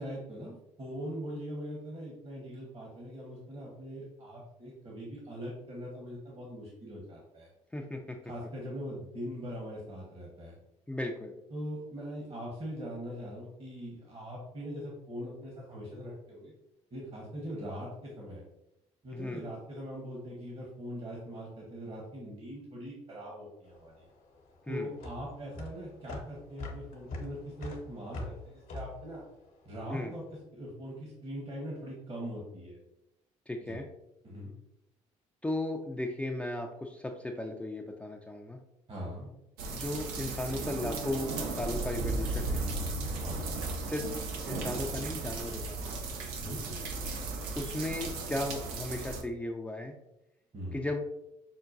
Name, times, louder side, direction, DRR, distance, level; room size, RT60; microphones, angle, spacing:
voice 1, 0.0-7.5 8.2-10.6 11.5-16.5 16.9-18.4 19.0-24.1 24.7-29.2 29.6-30.2 30.5-32.8 33.6-33.8 34.2-34.5 38.9-39.3 43.2-43.4 46.3-46.8 50.5-50.9, equal, 40° right, -3 dB, 1.1 m, -41 dB
voice 2, 7.7-8.2 10.9-11.3 19.1-19.4 24.7-24.9 29.9-30.1 33.5-33.9 35.4-38.6 39.7-42.6 43.8-44.1 44.5-45.9 47.6-49.9 50.7-51.0, left 1 dB, 10° left, 1 dB, 0.4 m, -36 dB
sound 1, 23.7-30.2, left 2 dB, 65° left, 0.9 m, -43 dB
sound 2, 39.6-49.2, right 3 dB, 80° right, 0.6 m, -35 dB
5.7 x 2.2 x 2.6 m, 0.87 s
hypercardioid pair, 60°, 15 cm